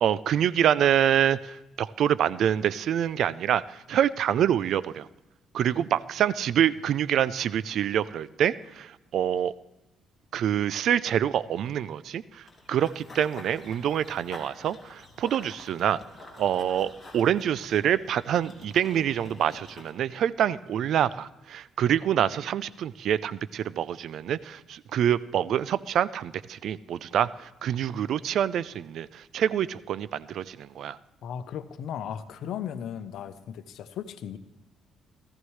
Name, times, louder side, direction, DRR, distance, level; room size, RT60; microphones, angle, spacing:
voice 1, 0.0-5.1 5.5-9.5 10.3-16.0 16.4-31.0, right 9 dB, 65° right, 18 dB, 0.4 m, -26 dB
Run / Bird vocalization bird call bird song, 12.5-19.9, left 2 dB, 15° left, 2.7 m, -48 dB
voice 2, 31.2-34.4, left 9 dB, 70° left, 11 dB, 0.8 m, -36 dB
17.5 x 14.0 x 3.2 m, 0.97 s
cardioid pair, 130°, 0 cm